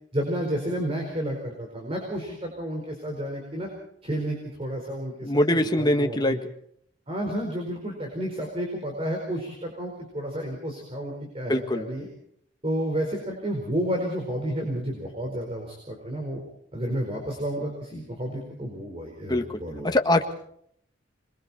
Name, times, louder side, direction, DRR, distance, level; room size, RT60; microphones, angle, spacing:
voice 1, 0.1-3.7 4.0-6.4 7.1-12.1 12.6-16.4 16.7-19.9, right 1 dB, 30° right, 1 dB, 4.7 m, -31 dB
voice 2, 5.2-6.4 11.5-11.9 19.3-19.4 19.8-20.2, left 1 dB, 20° left, 5 dB, 1.7 m, -22 dB
27.0 x 22.0 x 4.4 m, 0.67 s
head